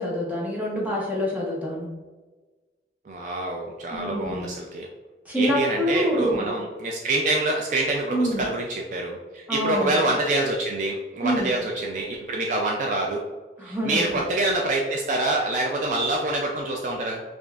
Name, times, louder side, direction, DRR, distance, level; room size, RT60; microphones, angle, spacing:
voice 1, 0.0-1.9 3.9-4.5 5.3-6.5 8.1-8.4 9.5-10.0 11.2-11.5 13.6-14.0, equal, 10° right, -4 dB, 0.8 m, -26 dB
voice 2, 3.1-4.9 5.3-13.2 13.6-17.2, right 2 dB, 45° right, 0 dB, 0.3 m, -26 dB
5.0 x 2.4 x 2.3 m, 1.3 s
head